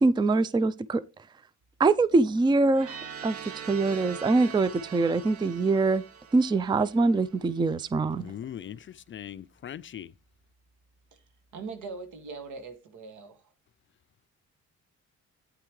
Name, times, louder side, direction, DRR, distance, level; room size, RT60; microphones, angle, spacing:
voice 1, 0.0-1.0 1.8-3.0 3.2-6.0 6.3-8.3, right 3 dB, 15° right, 0.4 m, -24 dB
sound 1, 2.7-7.6, right 7 dB, 50° right, 1.2 m, -43 dB
voice 2, 8.2-10.1, left 10 dB, 40° left, 0.4 m, -40 dB
voice 3, 11.5-13.4, right 4 dB, 75° right, 2.1 m, -41 dB
11.5 x 9.3 x 3.2 m
cardioid pair, 90°, 30 cm